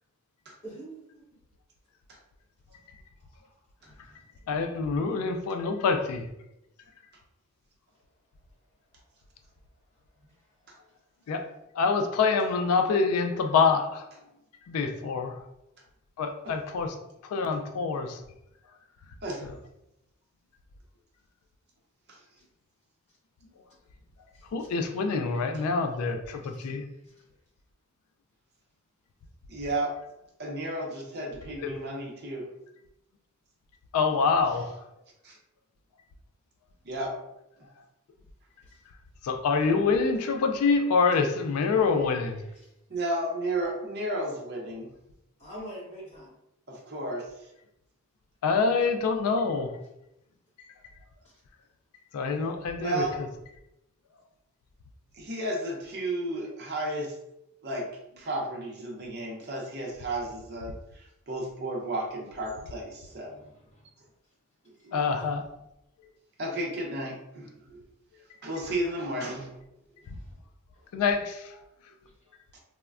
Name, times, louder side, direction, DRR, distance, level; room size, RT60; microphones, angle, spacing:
voice 1, 0.6-1.2 24.8-25.2 26.4-26.7 42.0-42.1 45.4-46.3 63.4-63.5, right 1 dB, 30° left, -7 dB, 1.1 m, -44 dB
voice 2, 4.5-6.3 11.3-11.5 11.8-14.0 14.7-15.4 16.2-16.9 17.2-18.2 24.5-26.8 33.9-34.7 39.2-42.4 48.4-49.7 52.1-53.0 64.9-65.4 70.9-71.4, left 4 dB, 80° left, 5 dB, 0.3 m, -26 dB
voice 3, 29.5-30.0 30.4-32.5 35.2-35.4 36.8-37.2 42.9-44.9 46.7-47.5 52.8-53.2 55.2-57.1 57.6-57.9 58.2-63.3 64.8-65.0 66.4-67.8 68.4-69.5, right 1 dB, 50° right, -1 dB, 0.6 m, -33 dB
3.2 x 2.1 x 2.3 m, 0.85 s
head